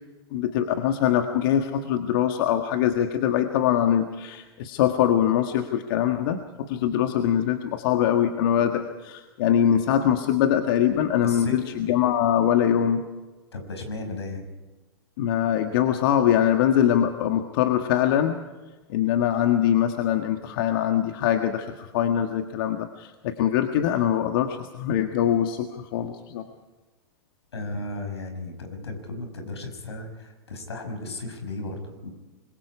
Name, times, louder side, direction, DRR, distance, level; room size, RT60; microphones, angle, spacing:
voice 1, 0.3-13.0 15.2-18.5 18.9-26.5, left 10 dB, 60° left, 6 dB, 1.7 m, -23 dB
voice 2, 11.2-11.7 13.5-14.4 27.5-32.1, left 2 dB, 85° left, 6 dB, 5.9 m, -35 dB
26.5 x 22.0 x 4.8 m, 1.2 s
hypercardioid pair, 110°, 13 cm